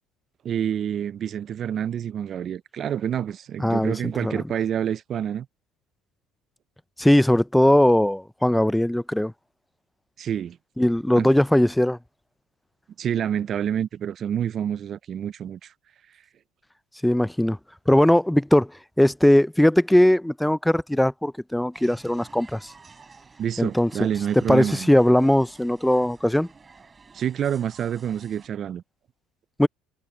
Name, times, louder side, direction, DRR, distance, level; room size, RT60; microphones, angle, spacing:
voice 1, 0.4-5.5 10.2-10.6 11.2-11.3 13.0-15.7 23.4-24.9 27.1-28.8, right 9 dB, 45° right, 0.5 m, -28 dB
voice 2, 3.6-3.9 4.2-4.4 7.0-9.3 10.8-12.0 17.0-17.6 17.9-18.7 19.0-22.7 23.6-24.1 24.3-26.5 29.6-29.7, left 1 dB, 5° left, 0.5 m, -19 dB
sound 1, 21.7-28.5, right 4 dB, 25° right, 7.5 m, -51 dB
supercardioid pair, 95°, 0 cm